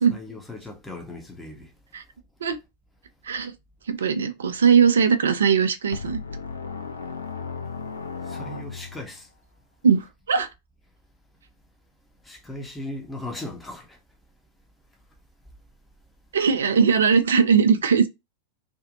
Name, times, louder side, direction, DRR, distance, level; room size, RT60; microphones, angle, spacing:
voice 1, 0.1-1.7 8.2-9.3 12.2-14.0, left 1 dB, 10° left, 0.9 m, -37 dB
voice 2, 3.9-6.2 9.8-10.5 16.3-18.1, right 6 dB, 65° right, 0.4 m, -20 dB
sound 1, 5.9-9.2, left 5 dB, 75° left, 0.3 m, -35 dB
2.6 x 2.4 x 2.7 m
figure-of-eight pair, 90°, 0 cm